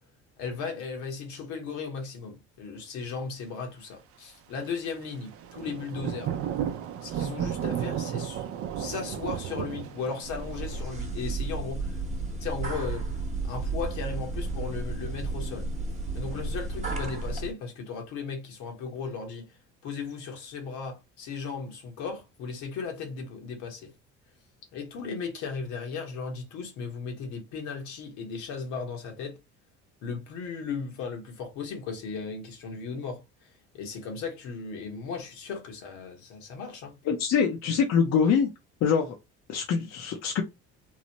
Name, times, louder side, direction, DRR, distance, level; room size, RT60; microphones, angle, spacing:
voice 1, 0.4-6.4 7.0-8.4 8.8-12.0 12.4-13.1 13.4-15.7 16.1-19.5 19.8-23.9 24.7-29.4 30.0-33.2 33.7-37.0, left 5 dB, 80° left, 1.1 m, -36 dB
Thunder / Rain, 5.3-10.8, right 9 dB, 50° right, 0.5 m, -33 dB
sound 1, 10.2-17.5, right 3 dB, 25° right, 0.9 m, -33 dB
voice 2, 37.1-38.5 38.8-39.2 39.5-40.4, left 6 dB, 60° left, 0.6 m, -24 dB
3.0 x 2.0 x 2.9 m
supercardioid pair, 85°, 29 cm